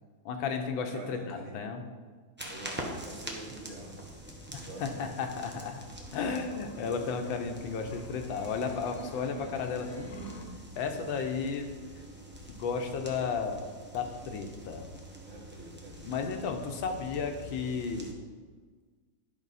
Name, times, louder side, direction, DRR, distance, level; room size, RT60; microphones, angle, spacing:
voice 1, 0.2-1.8 4.5-5.8 6.1-10.4 10.8-11.7 12.5-13.6 13.9-14.9 16.0-18.1, left 5 dB, 85° left, 5 dB, 1.6 m, -34 dB
voice 2, 0.9-1.6 2.4-4.0 4.5-5.2 15.2-16.0, right 2 dB, 45° right, -1 dB, 1.6 m, -46 dB
sound 1, 2.4-18.1, right 1 dB, 10° right, 0.5 m, -45 dB
sound 2, 3.7-10.5, right 1 dB, 60° left, 1.2 m, -49 dB
11.0 x 5.5 x 4.1 m, 1.5 s
omnidirectional pair, 2.0 m